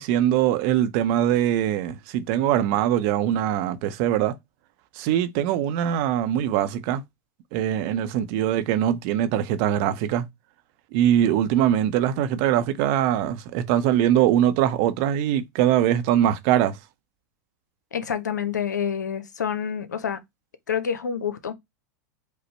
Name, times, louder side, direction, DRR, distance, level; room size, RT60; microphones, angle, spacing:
voice 1, 0.0-4.3 5.0-7.0 7.5-10.3 10.9-16.8, right 11 dB, 55° right, 0.6 m, -22 dB
voice 2, 17.9-20.2 20.7-21.5, left 7 dB, 85° left, 0.7 m, -27 dB
5.1 x 2.1 x 4.3 m
hypercardioid pair, 95°, 9 cm